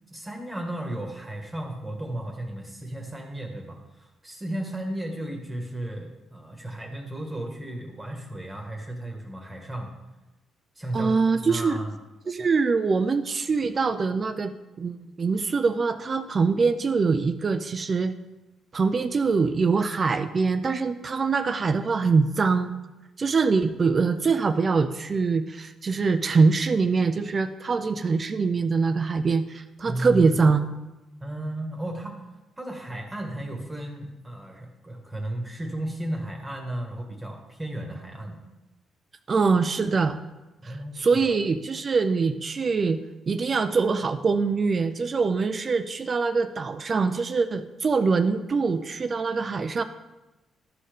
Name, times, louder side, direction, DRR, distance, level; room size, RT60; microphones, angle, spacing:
voice 1, 0.1-10.0 10.7-11.1 11.4-12.0 29.8-30.2 31.2-32.2 32.6-38.4 40.6-41.2, right 1 dB, 15° right, 1 dB, 1.6 m, -34 dB
voice 2, 10.9-11.8 12.3-18.1 18.7-22.7 23.2-30.7 39.3-40.2 40.6-43.0 43.3-49.8, right 4 dB, 40° right, 9 dB, 0.5 m, -23 dB
13.0 x 4.3 x 5.1 m, 1.1 s
cardioid pair, 90°, 0 cm